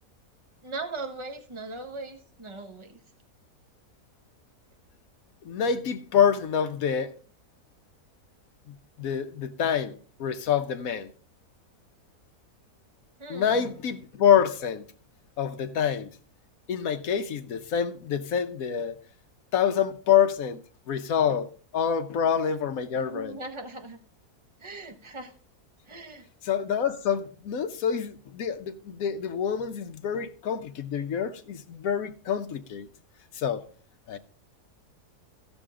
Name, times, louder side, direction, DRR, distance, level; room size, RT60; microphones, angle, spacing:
voice 1, 0.6-3.0 13.2-13.8 23.0-24.0 24.6-25.3 25.9-26.3, right 3 dB, 20° right, 1.0 m, -39 dB
voice 2, 5.4-7.1 9.0-11.1 13.3-14.8 15.4-16.1 16.7-19.0 19.5-20.6 20.9-21.5 21.7-23.4 26.4-32.9 33.3-33.6 34.1-34.2, left 8 dB, 65° left, 1.2 m, -26 dB
15.5 x 6.2 x 3.7 m
omnidirectional pair, 1.7 m